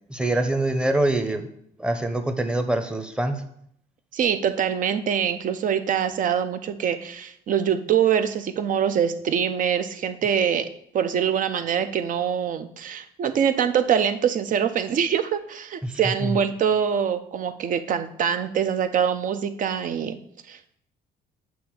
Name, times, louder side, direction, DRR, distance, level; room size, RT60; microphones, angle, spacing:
voice 1, 0.1-1.5 1.8-3.4 15.8-16.4, right 1 dB, 5° right, 7 dB, 0.8 m, -25 dB
voice 2, 4.1-20.2 20.5-20.7, right 8 dB, 50° right, 10 dB, 0.7 m, -24 dB
7.9 x 3.5 x 6.3 m, 0.70 s
cardioid pair, 110°, 17 cm